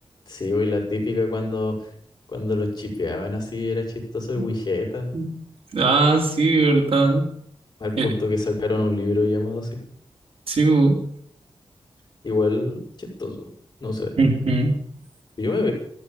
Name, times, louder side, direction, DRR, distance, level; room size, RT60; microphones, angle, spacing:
voice 1, 0.3-1.9 2.3-5.1 7.8-9.8 12.2-13.5 13.8-14.1 15.4-15.7, left 2 dB, 45° left, -1 dB, 5.8 m, -25 dB
voice 2, 5.7-7.3 8.0-8.1 10.5-11.0 14.2-14.7, right 3 dB, 90° right, 3 dB, 3.4 m, -19 dB
13.5 x 13.5 x 7.2 m, 0.64 s
wide cardioid pair, 105°, 10 cm